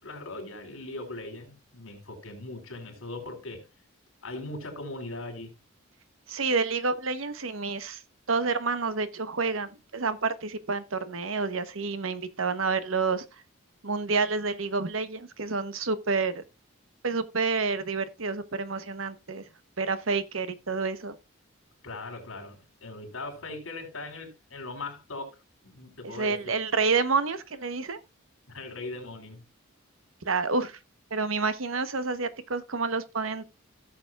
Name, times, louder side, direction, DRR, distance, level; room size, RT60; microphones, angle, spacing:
voice 1, 0.0-3.6 4.2-5.6 21.8-25.3 25.6-26.5 28.5-29.4, left 2 dB, 80° left, 3.9 m, -39 dB
voice 2, 6.3-8.0 8.3-13.2 13.8-16.4 17.0-19.4 19.8-21.1 26.0-28.0 30.2-30.8 31.1-33.4, right 4 dB, 75° right, 1.1 m, -29 dB
16.5 x 6.9 x 2.4 m
head